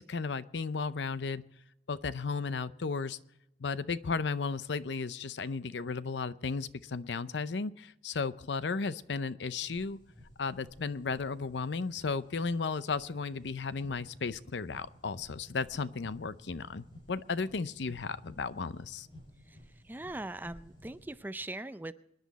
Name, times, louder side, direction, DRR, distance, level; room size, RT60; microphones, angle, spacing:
voice 1, 0.0-1.4 1.9-3.2 3.6-10.0 10.4-19.1, left 4 dB, 75° left, 15 dB, 0.6 m, -34 dB
sound 1, 9.5-21.1, left 1 dB, 25° left, 6.5 m, -56 dB
voice 2, 19.9-21.9, right 2 dB, 10° right, 12 dB, 0.4 m, -40 dB
25.5 x 10.5 x 4.1 m, 0.82 s
head